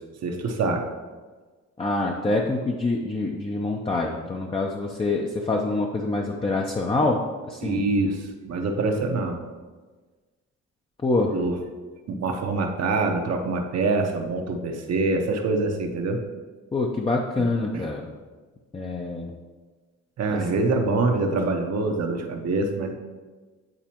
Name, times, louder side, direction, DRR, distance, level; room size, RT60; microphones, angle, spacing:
voice 1, 0.2-0.8 7.6-9.4 11.3-11.6 12.1-16.2 17.7-17.8 20.2-22.9, right 3 dB, 60° right, 3 dB, 0.9 m, -25 dB
voice 2, 1.8-7.2 7.5-7.8 11.0-11.3 16.7-18.1 18.7-19.3, left 2 dB, 20° left, 0 dB, 0.6 m, -25 dB
9.0 x 4.1 x 2.9 m, 1.4 s
cardioid pair, 90°, 30 cm